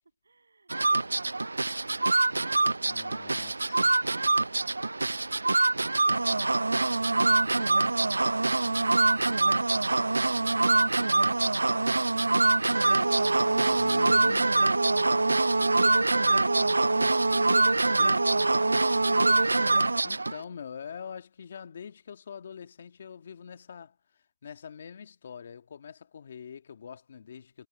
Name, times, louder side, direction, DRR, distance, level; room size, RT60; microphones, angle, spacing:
voice 1, 0.2-0.3, right 3 dB, 50° right, 7.3 m, -64 dB
sound 1, 0.7-20.4, right 2 dB, 70° right, 0.3 m, -24 dB
voice 2, 2.8-4.0 13.8-14.5 17.9-18.2 20.0-27.7, left 7 dB, 25° left, 2.0 m, -44 dB
figure-of-eight pair, 175°, 0 cm